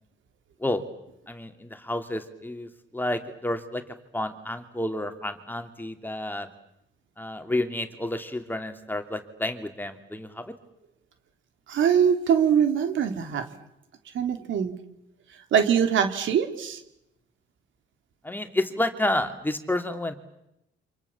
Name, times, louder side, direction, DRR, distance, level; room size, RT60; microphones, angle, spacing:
voice 1, 1.3-6.5 7.2-10.6 18.2-20.1, left 1 dB, 10° left, 7 dB, 3.0 m, -30 dB
voice 2, 11.7-13.4 14.1-14.8 15.5-16.8, right 8 dB, 75° right, 7 dB, 3.2 m, -22 dB
29.5 x 26.5 x 7.4 m, 0.84 s
cardioid pair, 90°, 20 cm